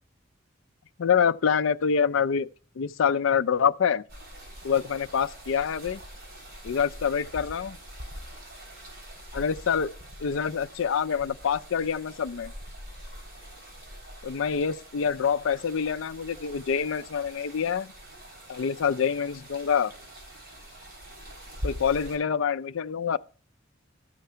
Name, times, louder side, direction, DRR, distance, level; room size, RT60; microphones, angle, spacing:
voice 1, 1.0-2.5 2.8-4.0 4.6-6.0 6.6-7.8 9.3-9.9 10.2-12.5 14.2-17.9 18.5-19.9 21.6-23.2, left 7 dB, 75° left, 0.4 m, -26 dB
sound 1, 4.1-22.2, equal, 50° right, 3.8 m, -44 dB
13.5 x 4.6 x 6.7 m
head